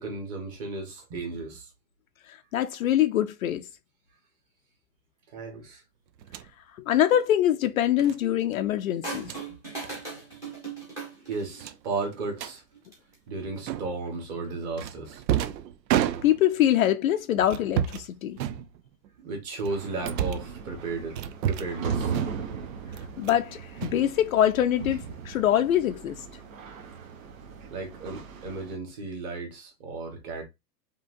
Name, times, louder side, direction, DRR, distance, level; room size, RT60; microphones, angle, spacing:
voice 1, 0.0-1.7 5.3-5.8 9.2-9.6 11.3-12.6 13.3-15.2 19.2-22.1 27.7-30.4, right 3 dB, 25° right, 1.3 m, -35 dB
voice 2, 2.5-3.6 6.9-9.3 16.2-18.4 23.2-26.2, left 11 dB, 55° left, 0.5 m, -24 dB
sound 1, 6.2-6.5 8.0-8.2 9.1-9.4 9.8-10.0 10.3-10.5 10.8-10.9 11.6-12.6 13.7-14.1 14.8-16.6 17.5-18.1 18.4-19.1 19.6-20.5 21.2-21.8 22.1-22.6 22.9-23.5 23.8-24.6, right 11 dB, 85° right, 0.7 m, -31 dB
sound 2, 9.0-11.7 12.7-13.1, right 3 dB, 5° right, 0.7 m, -38 dB
sound 3, 19.7-28.8, right 6 dB, 55° right, 1.0 m, -37 dB
5.5 x 3.0 x 2.6 m
supercardioid pair, 180°, 49 cm